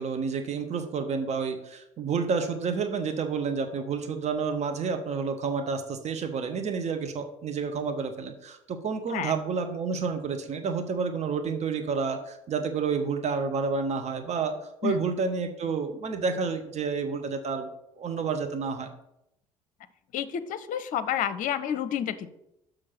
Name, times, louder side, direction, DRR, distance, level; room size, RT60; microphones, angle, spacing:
voice 1, 0.0-17.7 18.0-18.9, right 5 dB, 40° right, 6 dB, 1.1 m, -30 dB
voice 2, 20.1-22.3, left 9 dB, 50° left, 12 dB, 0.7 m, -29 dB
6.5 x 6.4 x 5.8 m, 0.83 s
figure-of-eight pair, 55°, 17 cm